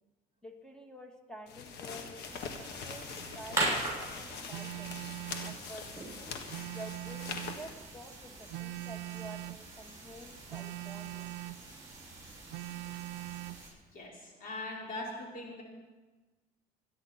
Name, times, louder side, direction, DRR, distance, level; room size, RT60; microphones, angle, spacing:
voice 1, 0.4-5.0 5.4-6.4 6.7-11.3, equal, 5° left, 4 dB, 2.0 m, -50 dB
sound 1, 1.5-7.7, left 6 dB, 80° left, 1.6 m, -43 dB
sound 2, 2.2-13.7, right 2 dB, 20° right, 6.8 m, -41 dB
Telephone, 4.5-5.6 6.5-7.7 8.5-9.7 10.5-11.6 12.5-13.6, right 20 dB, 80° right, 0.4 m, -41 dB
voice 2, 13.9-15.6, left 2 dB, 60° left, -2 dB, 4.8 m, -41 dB
26.0 x 10.0 x 4.4 m, 1.2 s
cardioid pair, 110°, 17 cm